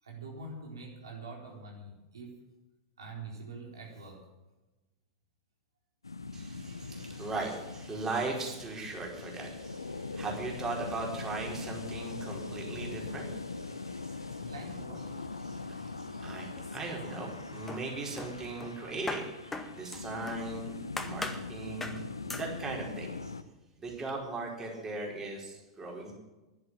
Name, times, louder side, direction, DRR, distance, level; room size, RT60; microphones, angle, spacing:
voice 1, 0.0-2.4 3.0-4.3 14.4-15.1, right 3 dB, 80° right, 0 dB, 4.4 m, -45 dB
sound 1, 6.0-23.4, left 3 dB, 90° left, 0.8 m, -41 dB
voice 2, 6.3-14.5 15.4-23.3 23.8-26.1, right 3 dB, 20° right, 0 dB, 4.7 m, -39 dB
sound 2, 16.6-17.3 17.7-20.5 21.0-21.5 21.8-22.0 22.3-22.5, left 3 dB, 10° left, 1.6 m, -40 dB
11.5 x 11.0 x 9.0 m, 1.1 s
figure-of-eight pair, 95°, 2 cm